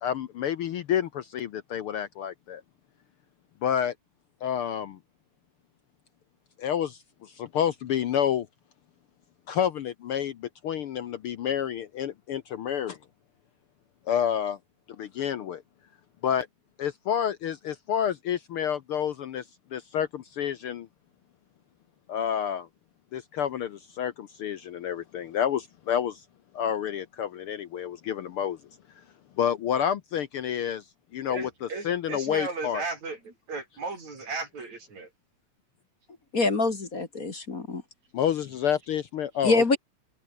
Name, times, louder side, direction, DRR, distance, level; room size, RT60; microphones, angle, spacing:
voice 1, 0.0-2.6 3.6-3.9 4.4-5.0 6.6-7.0 7.4-8.5 9.5-13.0 14.1-14.6 15.0-15.6 16.2-16.5 16.8-19.4 19.7-20.9 22.1-22.7 23.1-26.2 26.5-28.6 29.4-30.8 31.1-32.8 38.1-39.8, left 9 dB, 65° left, 1.5 m, -29 dB
voice 2, 31.3-35.1, right 4 dB, 70° right, 7.0 m, -36 dB
voice 3, 36.3-37.8 39.4-39.8, left 3 dB, 30° left, 2.3 m, -25 dB
omnidirectional pair, 3.3 m